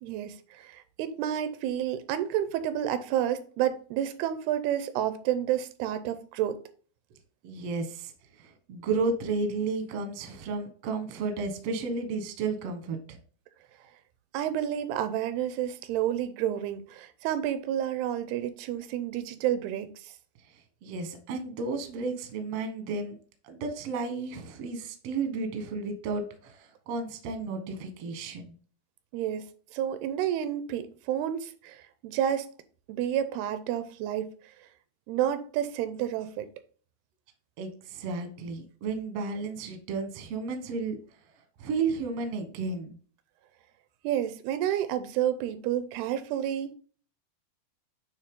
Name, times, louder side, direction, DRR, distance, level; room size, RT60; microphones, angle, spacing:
voice 1, 0.0-6.6 14.3-20.1 29.1-32.5 32.9-34.3 35.1-36.5 44.0-46.8, right 11 dB, 90° right, 2.6 m, -30 dB
voice 2, 7.4-8.1 8.4-13.2 20.8-23.2 23.4-28.5 37.6-41.0 41.6-43.0, right 4 dB, 70° right, 1.5 m, -33 dB
9.0 x 3.3 x 3.6 m
omnidirectional pair, 4.4 m